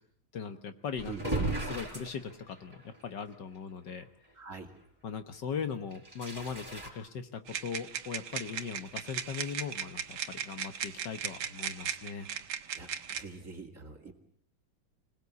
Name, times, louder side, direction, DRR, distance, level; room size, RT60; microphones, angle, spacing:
voice 1, 0.3-1.1 1.4-4.1 5.0-12.3, left 6 dB, 60° left, 9 dB, 1.8 m, -39 dB
sound 1, 1.0-2.9 3.3-3.4 3.9-4.0 5.9-6.9, right 2 dB, 10° right, 4.9 m, -35 dB
voice 2, 4.3-4.7 12.7-14.1, right 4 dB, 40° right, 4 dB, 2.8 m, -45 dB
sound 2, 7.5-13.2, right 8 dB, 80° right, 2.0 m, -38 dB
26.0 x 18.5 x 8.4 m, 0.65 s
omnidirectional pair, 2.2 m